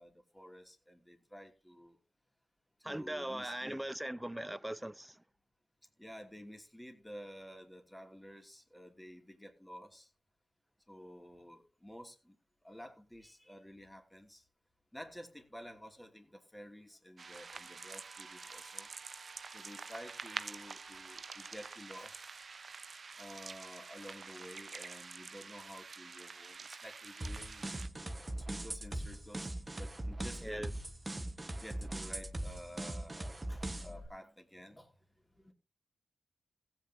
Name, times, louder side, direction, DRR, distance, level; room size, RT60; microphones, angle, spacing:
voice 1, 0.0-2.0 2.8-3.8 6.0-10.1 10.9-12.4 12.6-14.5 14.9-18.9 19.5-22.2 23.2-27.6 28.4-30.7 31.6-35.0 35.3-35.5, equal, 10° left, 2.7 m, -51 dB
voice 2, 2.8-5.2 30.4-30.7, right 1 dB, 10° right, 0.8 m, -40 dB
sound 1, 17.2-27.9, right 4 dB, 55° right, 0.7 m, -47 dB
sound 2, 27.2-34.1, right 1 dB, 25° right, 1.4 m, -41 dB
16.0 x 8.7 x 2.8 m
supercardioid pair, 45°, 0 cm